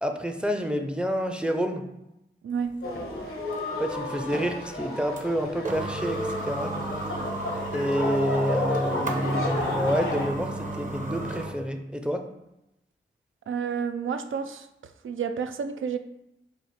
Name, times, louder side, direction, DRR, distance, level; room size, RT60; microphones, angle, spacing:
voice 1, 0.0-1.9 3.7-6.8 7.7-12.3, equal, 5° right, 5 dB, 0.5 m, -28 dB
voice 2, 2.4-2.8 13.5-14.7 15.0-16.0, right 6 dB, 70° right, 9 dB, 0.4 m, -30 dB
sound 1, 2.6-11.6, right 2 dB, 40° right, 0.8 m, -34 dB
sound 2, 2.8-10.3, left 2 dB, 75° left, 0.9 m, -32 dB
4.5 x 2.4 x 4.1 m, 0.88 s
cardioid pair, 50°, 21 cm